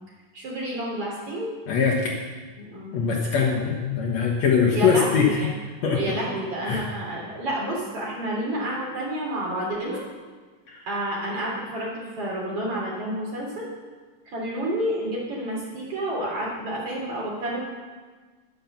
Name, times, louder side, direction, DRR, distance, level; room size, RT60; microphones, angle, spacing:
voice 1, 0.3-1.5 2.6-3.0 4.7-5.5 5.9-10.0 10.9-13.7 14.3-17.6, right 1 dB, 45° right, -3 dB, 3.8 m, -29 dB
voice 2, 1.7-2.1 2.9-5.3 5.8-6.0 6.7-6.8, left 6 dB, 60° left, -1 dB, 2.1 m, -22 dB
11.0 x 10.0 x 7.1 m, 1.4 s
omnidirectional pair, 4.0 m